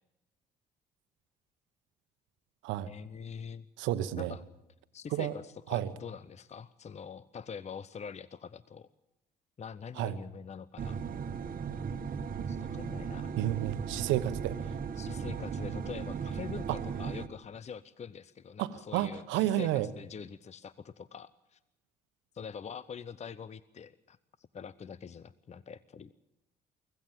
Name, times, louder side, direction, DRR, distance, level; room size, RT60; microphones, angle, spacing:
voice 1, 2.8-3.7 4.2-4.4 4.9-8.9 9.6-11.0 12.5-13.3 14.0-14.1 15.0-21.6 22.3-24.2 24.5-26.1, left 6 dB, 35° left, 18 dB, 0.8 m, -44 dB
voice 2, 3.8-4.3 5.1-5.3 5.7-5.9 10.0-10.2 13.4-14.6 16.7-16.8 18.6-19.9, right 13 dB, 70° right, 13 dB, 1.1 m, -31 dB
sound 1, 10.8-17.3, right 6 dB, 45° right, 1.4 m, -37 dB
24.5 x 16.0 x 7.4 m, 0.94 s
hypercardioid pair, 50°, 20 cm